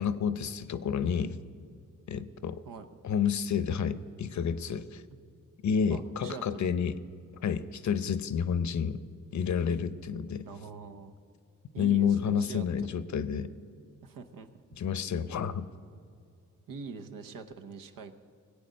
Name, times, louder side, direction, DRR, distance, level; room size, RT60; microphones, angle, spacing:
voice 1, 0.0-1.4 2.1-2.6 3.0-5.0 5.6-7.0 7.4-9.0 9.3-10.5 11.8-13.5 14.8-15.7, left 7 dB, 60° left, 14 dB, 0.7 m, -29 dB
voice 2, 5.9-6.6 10.4-11.2 11.7-12.7 14.0-14.5 16.7-18.1, right 5 dB, 85° right, 7 dB, 0.9 m, -43 dB
18.5 x 8.3 x 6.4 m, 2.4 s
cardioid pair, 55°, 32 cm